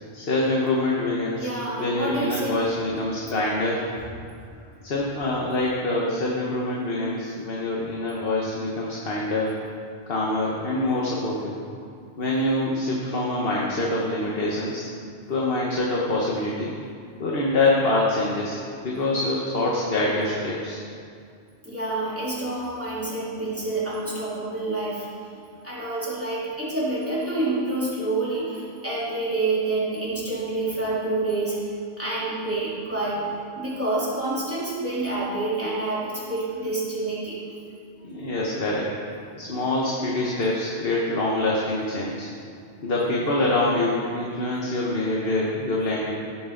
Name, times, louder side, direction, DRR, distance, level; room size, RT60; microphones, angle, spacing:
voice 1, 0.1-1.5 1.8-3.8 4.8-9.5 10.1-11.5 12.2-14.9 15.3-16.7 17.2-18.6 18.8-20.8 38.0-38.9 39.4-42.3 42.8-46.1, left 2 dB, 60° left, -3 dB, 1.5 m, -25 dB
voice 2, 1.4-2.6 21.6-25.1 25.3-31.6 32.0-33.2 33.6-37.4, right 2 dB, 10° right, -9 dB, 3.5 m, -28 dB
16.5 x 8.6 x 4.0 m, 2.3 s
omnidirectional pair, 1.1 m